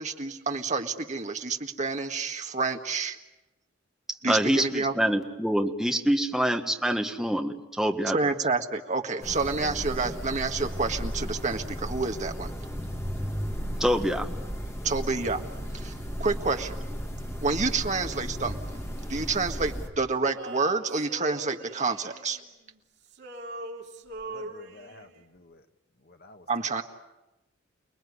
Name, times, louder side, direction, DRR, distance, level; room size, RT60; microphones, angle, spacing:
voice 1, 0.0-3.2 4.2-4.9 8.1-12.5 14.8-15.4 15.7-15.9 16.2-16.7 17.4-18.6 19.1-22.4 26.5-26.8, right 4 dB, 35° right, 5 dB, 1.7 m, -28 dB
voice 2, 4.3-8.3 13.8-14.3, equal, ahead, 3 dB, 1.6 m, -26 dB
sound 1, 9.2-19.9, equal, 15° left, 2.6 m, -35 dB
Male singing, 20.3-22.8 23.1-25.2, right 2 dB, 60° right, 3.1 m, -42 dB
voice 3, 24.3-25.6 26.0-26.8, left 2 dB, 50° left, 7 dB, 1.5 m, -51 dB
29.5 x 20.0 x 9.7 m, 1.0 s
head